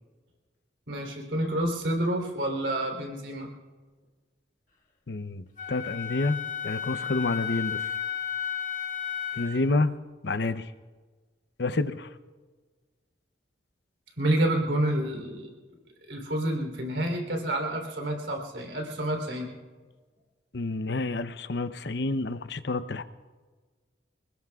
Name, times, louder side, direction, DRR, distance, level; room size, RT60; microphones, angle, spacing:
voice 1, 0.9-3.5 14.2-15.5 16.1-19.5, right 1 dB, 70° right, 2 dB, 3.5 m, -28 dB
voice 2, 5.1-6.4 6.6-7.8 9.4-9.9 10.2-10.6 11.6-12.1 20.5-23.0, left 2 dB, 60° left, 11 dB, 0.7 m, -28 dB
Wind instrument woodwind instrument, 5.6-9.6, left 8 dB, 45° left, 1.8 m, -33 dB
28.5 x 20.0 x 2.4 m, 1.4 s
head